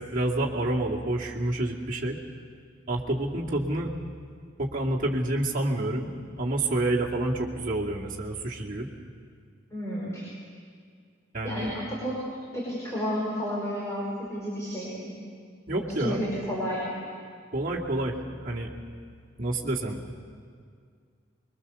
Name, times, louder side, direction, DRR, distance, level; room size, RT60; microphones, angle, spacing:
voice 1, 0.1-2.2 2.9-3.9 4.6-8.9 11.3-11.7 15.7-16.2 17.5-18.1 18.4-18.7 19.4-20.0, right 1 dB, 45° right, -4 dB, 2.4 m, -28 dB
voice 2, 9.7-10.2 11.4-12.2 12.5-15.2 16.0-16.9, equal, 15° left, -6 dB, 5.1 m, -31 dB
25.0 x 22.5 x 6.9 m, 2.1 s
head